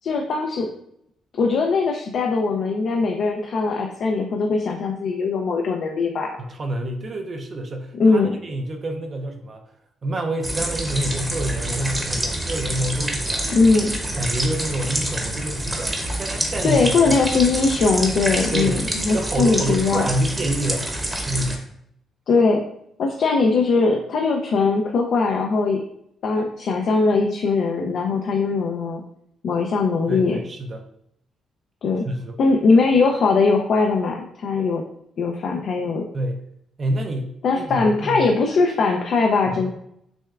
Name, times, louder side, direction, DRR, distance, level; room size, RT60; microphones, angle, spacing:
voice 1, 0.0-0.7 1.4-6.4 8.0-8.3 13.5-13.9 16.6-20.1 22.3-22.6 23.0-25.8 26.2-29.0 29.4-30.4 31.8-32.1 32.4-34.8 35.2-36.0 37.4-39.7, left 4 dB, 65° left, 2 dB, 0.4 m, -20 dB
voice 2, 6.4-9.6 10.0-13.5 14.2-17.2 18.5-18.9 19.1-20.9 21.2-21.7 30.1-30.9 32.0-32.4 36.1-36.5 36.8-38.3 39.5-39.7, right 1 dB, 40° right, 3 dB, 0.5 m, -27 dB
sound 1, 10.4-21.6, right 1 dB, 15° right, 0.8 m, -27 dB
6.1 x 2.2 x 2.4 m, 0.74 s
cardioid pair, 90°, 0 cm